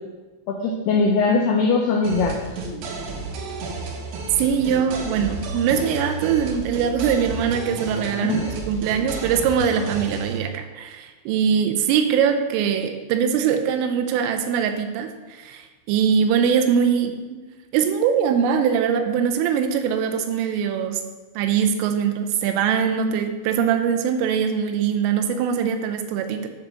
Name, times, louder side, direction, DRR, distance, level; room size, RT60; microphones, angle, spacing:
voice 1, 0.5-2.4 8.1-8.6, left 4 dB, 80° left, 0 dB, 2.4 m, -21 dB
sound 1, 2.0-10.4, right 3 dB, 70° right, 2.5 m, -32 dB
voice 2, 4.4-8.4 8.7-17.4 17.7-21.0 21.4-26.5, right 7 dB, 90° right, 6 dB, 3.3 m, -22 dB
12.0 x 4.2 x 6.6 m, 1.3 s
omnidirectional pair, 5.7 m